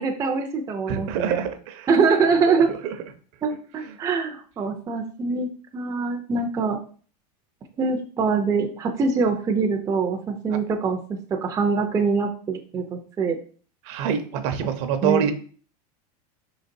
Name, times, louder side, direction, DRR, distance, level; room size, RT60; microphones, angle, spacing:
voice 1, 0.0-1.5 1.9-2.7 3.4-6.8 7.8-11.0 11.4-13.4 15.0-15.2, right 4 dB, 20° right, 2 dB, 0.5 m, -24 dB
voice 2, 0.9-1.9 2.5-3.0 10.5-10.6 13.8-15.3, right 8 dB, 55° right, 7 dB, 0.7 m, -26 dB
4.9 x 3.9 x 2.6 m, 0.43 s
supercardioid pair, 135°, 20 cm